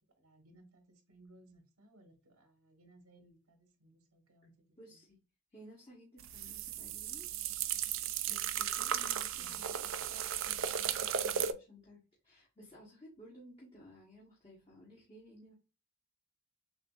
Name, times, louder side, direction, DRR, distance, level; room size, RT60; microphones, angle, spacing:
voice 1, 0.2-4.5 4.9-5.0 9.3-9.6, right 1 dB, 80° right, 3 dB, 1.2 m, -62 dB
voice 2, 4.8-5.2 5.5-7.3 8.3-15.5, equal, 25° left, -5 dB, 1.1 m, -56 dB
sound 1, 6.2-11.5, right 9 dB, 60° right, 0.3 m, -35 dB
6.7 x 2.5 x 2.4 m, 0.33 s
head